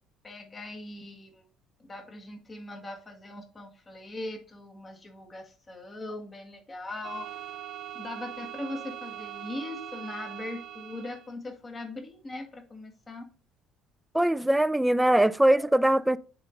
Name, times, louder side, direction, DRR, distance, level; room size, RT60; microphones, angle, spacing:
voice 1, 0.2-1.5 1.8-7.3 7.9-13.2, left 2 dB, 30° left, 1.8 m, -40 dB
sound 1, 7.0-11.3, right 11 dB, 65° right, 0.4 m, -41 dB
voice 2, 14.1-16.2, right 1 dB, 5° right, 0.4 m, -22 dB
8.0 x 3.7 x 5.2 m
supercardioid pair, 75°, 0 cm